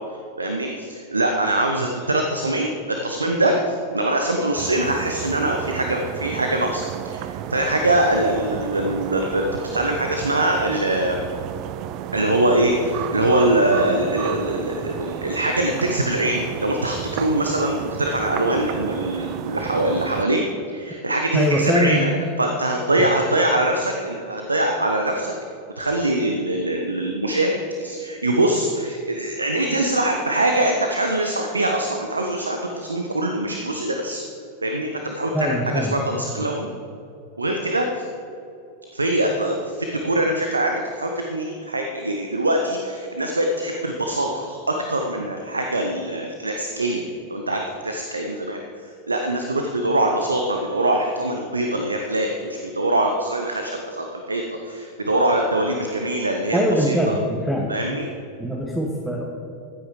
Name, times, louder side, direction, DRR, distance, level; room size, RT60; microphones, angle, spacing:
voice 1, 0.4-11.2 12.1-20.4 20.7-22.1 22.4-25.3 25.8-34.2 34.6-36.7 37.4-38.1 38.9-47.0 47.3-57.0 57.7-58.1, right 1 dB, 80° right, 3 dB, 1.0 m, -23 dB
sound 1, 4.5-20.2, right 11 dB, 40° right, 0.4 m, -32 dB
voice 2, 21.3-22.1 35.3-36.0 36.3-36.5 56.5-57.7 58.4-59.2, equal, 5° right, -2 dB, 1.4 m, -22 dB
15.0 x 9.0 x 4.9 m, 2.7 s
figure-of-eight pair, 90°, 0 cm